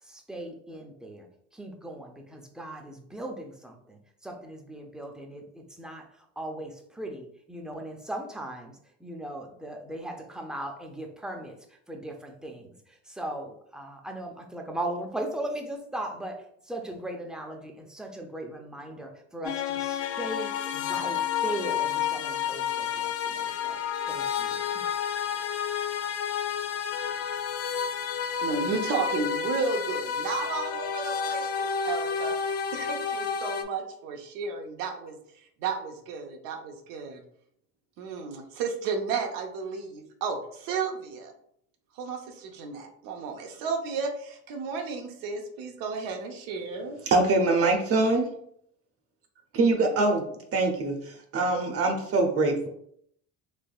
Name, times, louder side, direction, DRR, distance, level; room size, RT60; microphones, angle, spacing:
voice 1, 0.0-23.8 24.1-24.9, right 1 dB, ahead, 2 dB, 0.6 m, -38 dB
sound 1, 19.4-33.6, left 7 dB, 45° left, 0.5 m, -30 dB
voice 2, 28.4-32.3 32.7-37.2 38.0-41.3 41.9-47.0, right 5 dB, 85° right, 4 dB, 0.7 m, -33 dB
voice 3, 47.1-48.3 49.5-50.3 50.5-52.7, right 2 dB, 45° right, 3 dB, 0.8 m, -24 dB
3.4 x 3.4 x 2.3 m, 0.68 s
supercardioid pair, 90°, 32 cm